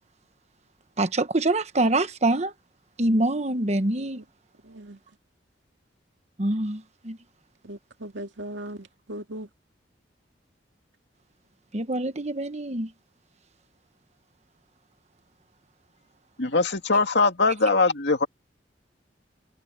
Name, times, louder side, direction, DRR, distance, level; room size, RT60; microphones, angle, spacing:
voice 1, 1.0-2.5 3.0-4.2 6.4-6.8 7.0-7.2 11.7-12.9, right 2 dB, 35° right, 1.2 m, -25 dB
voice 2, 4.6-5.0 7.6-9.5, right 1 dB, 80° right, 2.5 m, -38 dB
voice 3, 16.4-18.3, left 3 dB, 70° left, 2.3 m, -21 dB
head